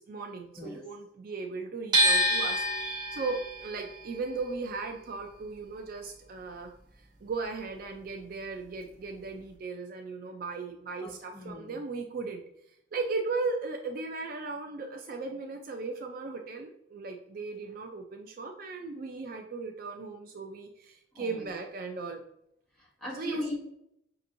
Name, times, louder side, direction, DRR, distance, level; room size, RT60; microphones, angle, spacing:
voice 1, 0.0-6.7 7.2-12.4 12.9-22.2 23.1-23.5, right 4 dB, 50° right, 4 dB, 0.4 m, -37 dB
sound 1, 1.9-8.0 8.2-9.5, right 1 dB, 25° right, 0.9 m, -30 dB
voice 2, 11.0-11.7 21.1-21.5 22.8-23.5, left 1 dB, 5° left, -7 dB, 1.4 m, -39 dB
5.2 x 2.9 x 2.5 m, 0.76 s
head